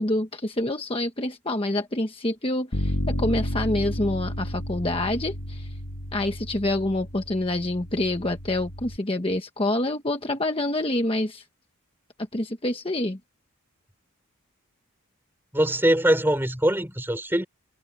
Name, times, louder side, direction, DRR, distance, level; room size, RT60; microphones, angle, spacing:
voice 1, 0.0-5.7 6.1-11.4 12.3-13.2, left 1 dB, 25° left, 1.2 m, -27 dB
Bass guitar, 2.7-9.0, equal, 70° left, 2.6 m, -32 dB
voice 2, 15.5-17.4, right 1 dB, 10° right, 4.1 m, -22 dB
head